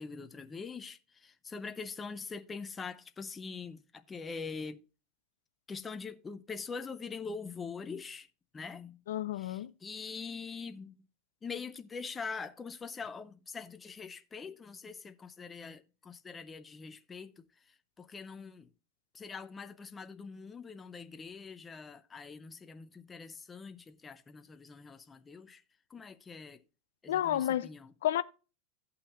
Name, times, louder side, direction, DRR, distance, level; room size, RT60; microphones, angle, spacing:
voice 1, 0.0-4.8 5.7-8.3 8.5-9.0 9.4-10.9 11.4-18.7 19.1-25.6 25.9-26.6 27.0-27.9, left 5 dB, 10° left, 0.5 m, -43 dB
voice 2, 9.1-9.7 27.1-27.7 28.0-28.2, left 12 dB, 85° left, 0.5 m, -30 dB
16.5 x 5.8 x 2.4 m
supercardioid pair, 165°, 0 cm